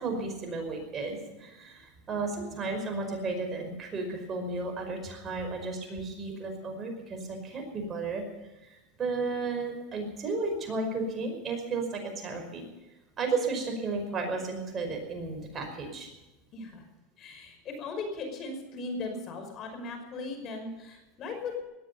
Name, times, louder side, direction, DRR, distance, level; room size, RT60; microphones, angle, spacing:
voice 1, 0.0-12.6 13.2-16.1, right 3 dB, 30° right, 3 dB, 5.3 m, -33 dB
voice 2, 16.5-16.8 17.2-21.6, left 3 dB, 40° left, 5 dB, 5.5 m, -38 dB
19.5 x 13.5 x 5.6 m, 1.0 s
supercardioid pair, 120°, 0 cm